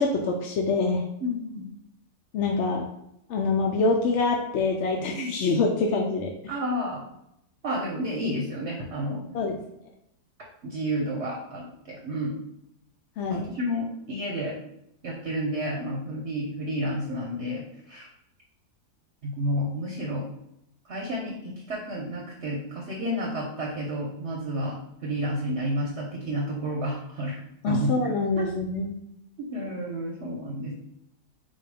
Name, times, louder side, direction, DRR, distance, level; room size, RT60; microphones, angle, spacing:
voice 1, 0.0-1.0 2.3-2.8 3.3-6.4 9.3-9.6 13.2-13.5 27.6-28.9, left 3 dB, 70° left, 1 dB, 0.7 m, -25 dB
voice 2, 1.2-1.7 5.1-5.3 6.5-7.0 7.6-9.4 10.6-12.3 13.3-14.5 15.0-18.1 19.2-20.3 20.9-27.4 27.7-27.9 28.4-28.5 29.4-30.7, equal, 50° right, -1 dB, 1.0 m, -31 dB
4.6 x 2.3 x 4.8 m, 0.78 s
omnidirectional pair, 1.7 m